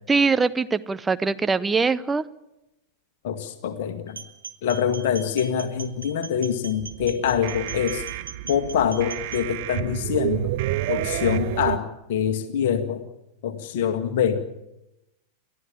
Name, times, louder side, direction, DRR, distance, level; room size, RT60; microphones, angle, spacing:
voice 1, 0.1-2.2, right 4 dB, 15° right, 15 dB, 0.8 m, -22 dB
voice 2, 3.2-4.2 4.6-8.0 8.5-10.5 10.9-13.0 13.4-14.4, left 8 dB, 50° left, 6 dB, 1.9 m, -25 dB
sound 1, 4.1-9.4, right 5 dB, 75° right, 1.8 m, -40 dB
sound 2, 6.8-11.8, right 15 dB, 50° right, 0.9 m, -29 dB
30.0 x 13.5 x 8.9 m, 0.91 s
figure-of-eight pair, 90°, 0 cm